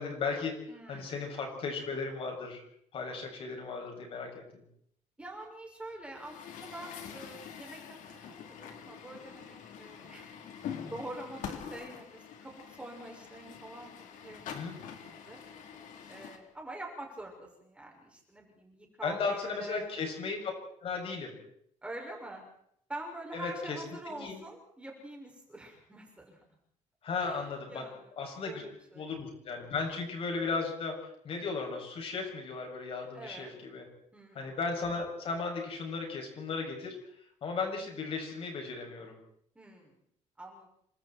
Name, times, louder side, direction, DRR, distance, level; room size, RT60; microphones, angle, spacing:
voice 1, 0.0-0.5 0.9-2.6 2.9-4.6 14.5-14.8 19.0-20.5 20.8-21.4 23.3-24.4 27.0-27.8 28.2-28.6 29.0-33.9 34.3-37.0 37.4-39.2, left 4 dB, 45° left, 1 dB, 7.6 m, -36 dB
voice 2, 0.7-1.1 5.2-8.2 8.5-10.3 10.8-13.9 14.2-15.4 16.1-19.9 21.8-22.4 22.9-26.4 27.2-28.1 28.4-29.1 33.1-33.5 34.1-34.6 39.5-40.0 40.4-40.7, right 1 dB, 10° right, 0 dB, 6.3 m, -46 dB
Truck, 6.1-16.4, left 8 dB, 70° left, 3.7 m, -45 dB
29.5 x 25.5 x 4.6 m, 0.71 s
cardioid pair, 160°, 13 cm